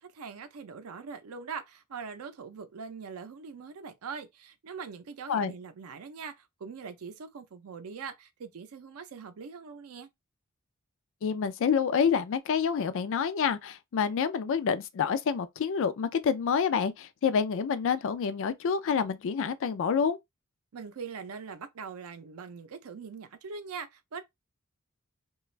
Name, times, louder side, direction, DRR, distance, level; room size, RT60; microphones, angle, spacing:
voice 1, 0.0-10.1 20.7-24.2, right 5 dB, 85° right, 0.5 m, -42 dB
voice 2, 11.2-20.2, left 6 dB, 65° left, 0.4 m, -28 dB
2.4 x 2.3 x 3.1 m
head